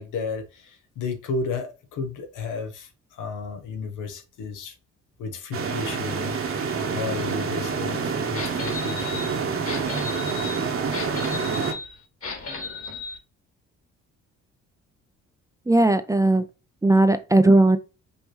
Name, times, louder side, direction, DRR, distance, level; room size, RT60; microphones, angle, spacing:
voice 1, 0.0-4.8 5.2-6.4 6.9-9.2, left 4 dB, 85° left, 1.0 m, -33 dB
sound 1, 5.5-11.7, right 5 dB, 45° right, 1.0 m, -27 dB
sound 2, 8.3-13.2, left 4 dB, 50° left, 2.0 m, -35 dB
voice 2, 15.7-16.4 16.8-17.8, right 2 dB, 10° right, 0.4 m, -17 dB
5.4 x 3.0 x 3.1 m
cardioid pair, 90°, 30 cm